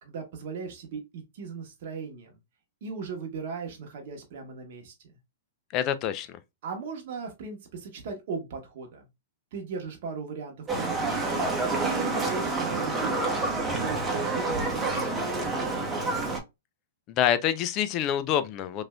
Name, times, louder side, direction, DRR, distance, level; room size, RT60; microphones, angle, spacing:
voice 1, 0.0-2.4 2.8-4.9 6.6-9.1 9.5-11.2 11.8-13.4 13.7-15.3, right 5 dB, 60° right, 0.9 m, -38 dB
voice 2, 5.7-6.4 17.1-18.9, left 10 dB, 40° left, 0.4 m, -26 dB
Livestock farm animals working animals, 10.7-16.4, right 3 dB, 15° right, 0.8 m, -28 dB
3.1 x 2.6 x 2.2 m
hypercardioid pair, 125°, 0 cm